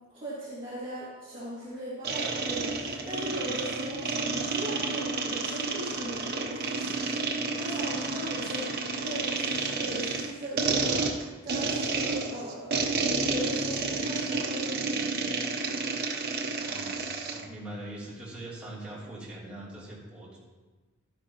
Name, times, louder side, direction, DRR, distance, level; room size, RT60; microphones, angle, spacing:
voice 1, 0.1-12.8 13.3-15.1, equal, 25° right, -9 dB, 2.1 m, -39 dB
sound 1, 2.0-17.4, right 3 dB, 50° right, 0.9 m, -30 dB
voice 2, 16.5-20.4, right 1 dB, 5° right, -9 dB, 3.1 m, -42 dB
12.0 x 10.5 x 3.0 m, 1.2 s
head